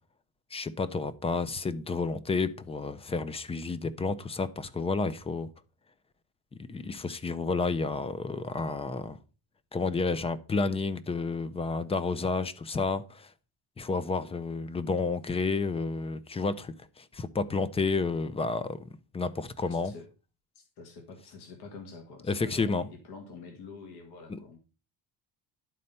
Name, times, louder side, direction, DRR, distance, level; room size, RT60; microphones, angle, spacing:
voice 1, 0.5-5.5 6.7-9.2 9.7-13.3 13.8-18.9 19.1-19.9 22.3-22.9 24.3-24.4, left 4 dB, 15° left, 0.4 m, -30 dB
voice 2, 19.6-20.1 20.6-24.6, left 4 dB, 65° left, 1.8 m, -47 dB
11.0 x 4.3 x 5.3 m
cardioid pair, 160°, 42 cm